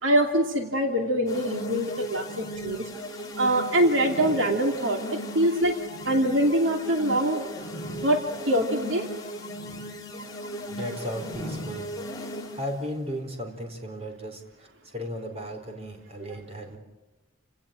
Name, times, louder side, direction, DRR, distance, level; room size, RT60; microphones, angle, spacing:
voice 1, 0.0-2.9 3.4-5.8 6.0-7.5 8.0-8.2 8.5-9.1, right 1 dB, 70° right, 3 dB, 2.7 m, -24 dB
sound 1, 1.3-12.8, equal, 20° left, 3.5 m, -36 dB
voice 2, 10.6-11.9 12.2-16.8, equal, 30° right, 5 dB, 4.4 m, -36 dB
29.5 x 17.5 x 8.9 m, 1.2 s
head